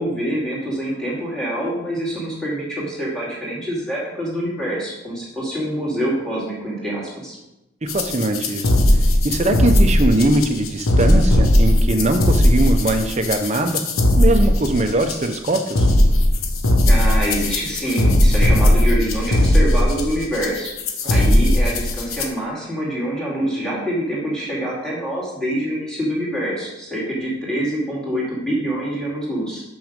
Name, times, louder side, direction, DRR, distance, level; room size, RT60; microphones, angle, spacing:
voice 1, 0.0-7.4 16.8-20.7 21.1-29.6, right 1 dB, 5° left, -6 dB, 2.4 m, -25 dB
voice 2, 7.8-8.7 9.2-13.8 14.2-15.9 21.3-21.4, right 2 dB, 35° right, 7 dB, 0.7 m, -21 dB
sound 1, 7.9-22.2, left 1 dB, 90° left, 1.0 m, -17 dB
6.3 x 6.1 x 5.1 m, 0.94 s
head